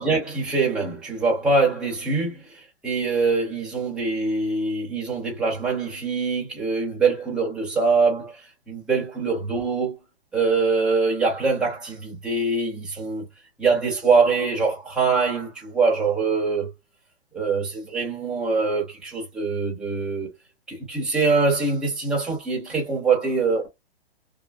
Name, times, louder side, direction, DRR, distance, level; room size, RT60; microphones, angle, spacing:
voice 1, 0.0-2.4 2.8-8.4 8.7-9.9 10.3-13.2 13.6-16.7 17.3-20.3 20.7-23.7, right 4 dB, 5° right, 0.5 m, -23 dB
2.7 x 2.5 x 2.3 m
hypercardioid pair, 160°, 31 cm